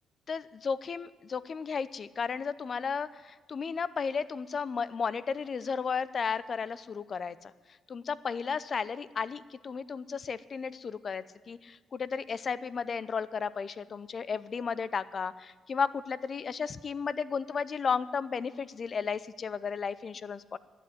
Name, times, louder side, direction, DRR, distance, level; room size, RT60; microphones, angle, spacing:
voice 1, 0.3-7.5 7.9-20.6, left 6 dB, 45° left, 17 dB, 0.6 m, -34 dB
12.0 x 8.4 x 9.6 m, 1.4 s
cardioid pair, 90°, 0 cm